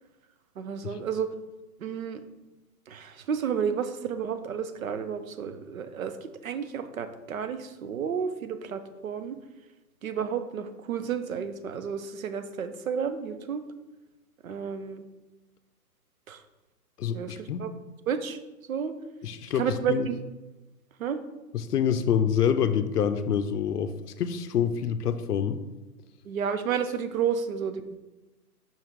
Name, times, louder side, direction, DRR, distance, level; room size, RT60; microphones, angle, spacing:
voice 1, 0.6-1.3 1.8-2.2 2.9-9.4 10.0-13.6 14.4-15.0 16.3-16.4 17.1-17.7 18.1-18.4 18.7-19.0 19.5-20.2 21.0-21.2 26.2-28.0, right 7 dB, 55° right, 10 dB, 0.6 m, -31 dB
voice 2, 17.0-17.6 19.2-20.1 21.5-25.6, left 8 dB, 70° left, 11 dB, 0.6 m, -26 dB
5.6 x 3.7 x 4.6 m, 1.1 s
hypercardioid pair, 175°, 49 cm